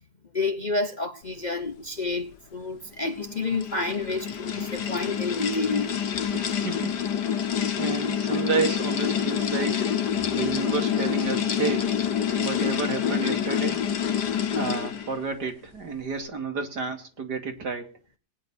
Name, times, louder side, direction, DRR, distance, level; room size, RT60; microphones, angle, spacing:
voice 1, 0.3-6.0, left 3 dB, 35° left, 0.8 m, -29 dB
sound 1, 3.0-15.2, left 8 dB, 85° left, 1.9 m, -27 dB
voice 2, 6.3-7.0 7.4-11.9 12.4-13.8 14.5-18.0, right 4 dB, 80° right, 3.1 m, -31 dB
20.0 x 9.9 x 4.2 m
omnidirectional pair, 1.8 m